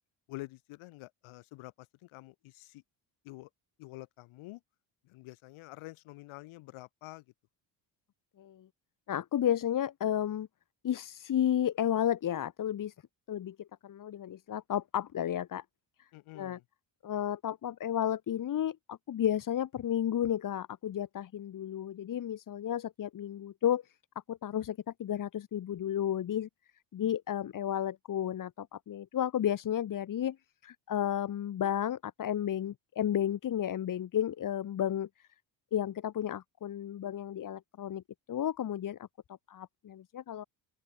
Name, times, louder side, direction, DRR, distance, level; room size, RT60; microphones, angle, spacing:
voice 1, 0.3-2.8 3.2-3.5 3.8-4.6 5.0-7.2 16.1-16.6, left 20 dB, 85° left, 2.6 m, -48 dB
voice 2, 8.4-8.7 9.1-10.5 10.8-12.9 13.3-15.6 16.0-16.1 16.3-16.6 17.0-23.9 24.3-26.5 26.9-30.4 30.6-35.3 35.7-38.0 38.3-39.1 39.5-40.4, left 10 dB, 40° left, 1.1 m, -32 dB
open air
cardioid pair, 85°, 47 cm